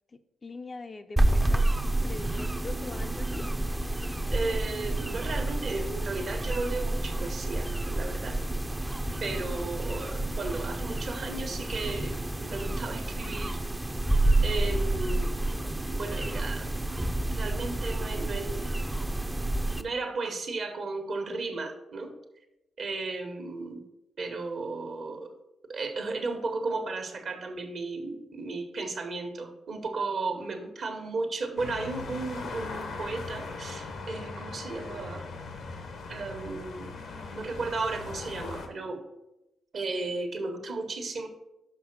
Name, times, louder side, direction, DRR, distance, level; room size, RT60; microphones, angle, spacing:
voice 1, 0.1-1.7 2.0-3.5 36.9-37.4, left 3 dB, 40° left, 8 dB, 0.6 m, -43 dB
sound 1, 1.2-19.8, right 1 dB, 15° right, 0.6 m, -29 dB
voice 2, 4.3-8.4 9.2-13.6 14.4-15.4 15.9-16.7 17.3-18.6 19.7-22.1 22.8-23.8 24.2-25.3 25.7-35.2 36.1-36.9 37.3-39.0 39.7-41.3, right 3 dB, 60° right, 5 dB, 1.3 m, -34 dB
sound 2, 31.6-38.7, left 3 dB, 70° left, 1.1 m, -39 dB
5.8 x 5.3 x 6.1 m, 0.92 s
hypercardioid pair, 45°, 0 cm